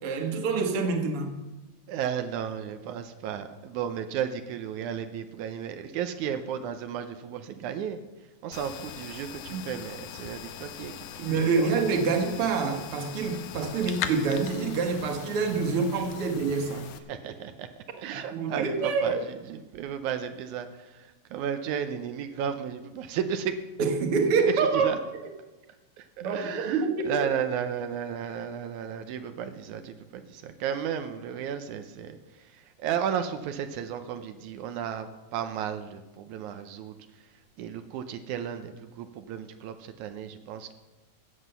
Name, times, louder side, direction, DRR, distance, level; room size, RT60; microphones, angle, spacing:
voice 1, 0.0-1.3 9.5-9.6 11.2-16.9 18.0-19.2 23.8-24.9 26.2-27.1, right 4 dB, 55° right, 5 dB, 2.2 m, -26 dB
voice 2, 1.9-8.0 8.4-10.9 11.2-11.7 17.1-17.7 18.0-23.6 24.6-25.0 26.0-37.0 37.6-40.7, right 8 dB, 85° right, 8 dB, 2.2 m, -34 dB
sound 1, 8.5-17.0, left 8 dB, 70° left, 1.9 m, -40 dB
15.0 x 8.2 x 6.8 m, 1.1 s
omnidirectional pair, 3.4 m